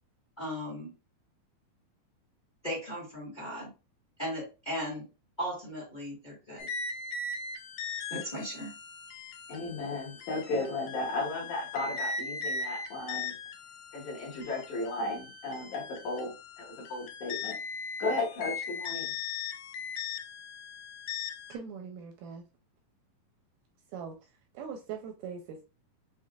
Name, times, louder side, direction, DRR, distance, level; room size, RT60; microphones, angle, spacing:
voice 1, 0.4-0.9 2.6-3.7 4.2-5.0 5.4-6.7 8.1-8.7, equal, 35° left, -4 dB, 0.7 m, -37 dB
sound 1, 6.6-21.6, left 5 dB, 80° left, 2.4 m, -39 dB
voice 2, 9.5-13.3 13.9-17.6 18.0-19.1, left 2 dB, 60° left, -3 dB, 2.5 m, -35 dB
voice 3, 21.5-22.4 23.9-25.6, right 6 dB, 80° right, 3 dB, 2.0 m, -41 dB
6.7 x 2.7 x 2.4 m, 0.30 s
omnidirectional pair, 4.2 m